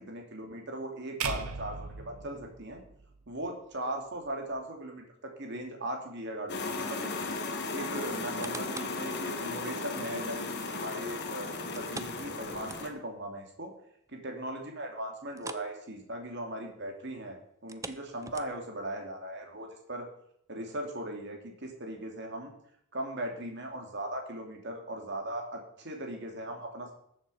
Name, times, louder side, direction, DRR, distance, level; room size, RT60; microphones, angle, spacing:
voice 1, 0.0-2.8 3.3-7.1 7.7-13.7 14.1-20.1 20.5-22.5 22.9-26.9, right 1 dB, 50° right, 2 dB, 2.7 m, -38 dB
sound 1, 1.2-3.5, right 5 dB, 90° right, 1.1 m, -38 dB
sound 2, 6.5-12.9, left 3 dB, 50° left, 1.6 m, -36 dB
sound 3, 8.1-9.0 9.5-9.6 11.7-13.2 13.5-13.6 14.1-14.2 15.3-15.7 16.0-16.2 17.5-18.8 19.4-19.5, right 4 dB, 15° right, 0.5 m, -44 dB
13.5 x 7.2 x 5.5 m, 0.73 s
head